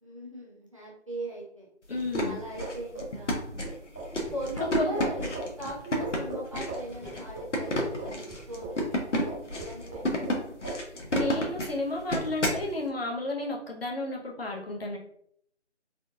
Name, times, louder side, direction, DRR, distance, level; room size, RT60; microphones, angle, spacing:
voice 1, 0.0-1.7 2.2-3.5 4.3-10.4 10.7-10.8, equal, 30° right, -5 dB, 0.7 m, -39 dB
sound 1, 1.9-12.7, equal, 80° left, 1.0 m, -31 dB
voice 2, 1.9-2.4 4.6-4.9 11.1-15.0, left 2 dB, 55° left, -1 dB, 0.8 m, -32 dB
sound 2, 2.5-9.0 9.3-10.4 10.6-10.8, right 2 dB, 15° left, 0.8 m, -39 dB
3.6 x 2.3 x 2.7 m, 0.68 s
figure-of-eight pair, 160°, 36 cm